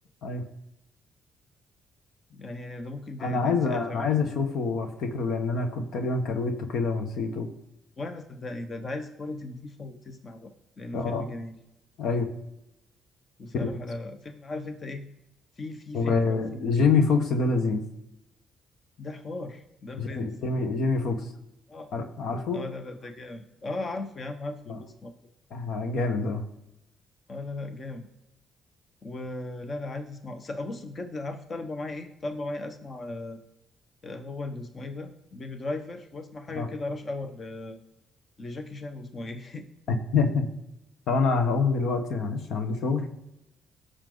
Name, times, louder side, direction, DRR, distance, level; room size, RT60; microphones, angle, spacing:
voice 1, 2.3-4.1 8.0-11.6 13.4-15.1 15.6-16.7 19.0-20.3 21.7-21.9 22.5-25.1 27.3-28.1 29.0-33.4 34.0-37.8 38.4-39.7, left 2 dB, 40° left, 7 dB, 1.2 m, -37 dB
voice 2, 3.2-7.5 10.9-11.2 12.0-12.3 13.6-13.7 15.9-17.8 20.0-21.3 21.9-22.6 24.7-24.8 25.5-26.4 36.5-36.7 40.1-40.5 41.1-43.1, left 4 dB, 75° left, 6 dB, 1.3 m, -26 dB
17.0 x 6.5 x 4.0 m, 0.86 s
cardioid pair, 90°, 0 cm